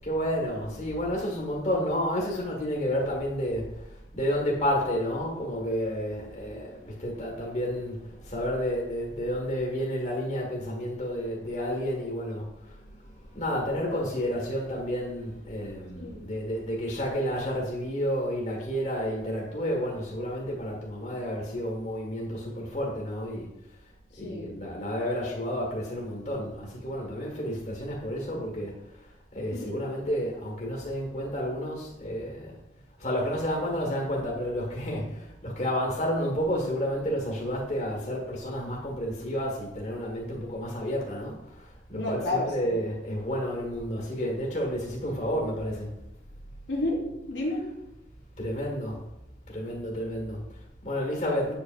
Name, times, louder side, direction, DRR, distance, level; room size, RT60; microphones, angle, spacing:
voice 1, 0.0-23.5 24.2-32.6 33.0-45.9 48.4-49.0 49.5-51.5, equal, 40° left, -1 dB, 1.6 m, -31 dB
voice 2, 16.0-16.3 24.1-24.6 29.5-29.8 41.9-42.8 46.7-47.8, left 2 dB, 75° left, -2 dB, 1.0 m, -31 dB
8.1 x 5.2 x 2.5 m, 0.92 s
head